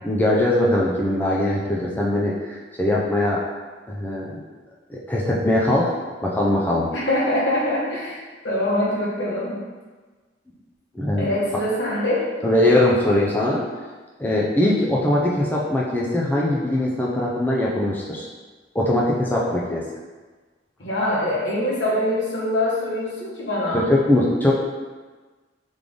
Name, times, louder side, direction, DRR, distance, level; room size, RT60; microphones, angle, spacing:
voice 1, 0.0-3.4 3.9-4.4 4.9-5.9 6.2-6.9 10.9-11.3 12.4-13.6 14.2-18.3 18.7-19.8 23.7-24.5, left 1 dB, 10° left, -4 dB, 0.4 m, -21 dB
voice 2, 6.9-9.6 11.2-12.2 20.8-23.8, left 1 dB, 75° left, -6 dB, 1.3 m, -24 dB
3.7 x 3.3 x 3.5 m, 1.3 s
head